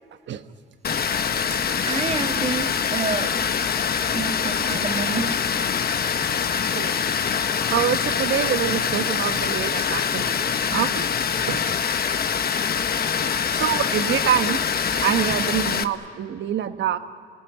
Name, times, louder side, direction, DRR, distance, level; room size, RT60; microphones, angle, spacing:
Water, 0.8-15.8, left 7 dB, 50° left, 1.1 m, -24 dB
voice 1, 1.8-3.3 4.1-5.4, right 4 dB, 35° right, 5 dB, 1.9 m, -28 dB
voice 2, 7.7-11.1 11.5-11.6 13.5-14.6 14.9-17.0, right 9 dB, 65° right, 9 dB, 1.2 m, -25 dB
28.5 x 18.0 x 9.8 m, 2.4 s
cardioid pair, 90°, 20 cm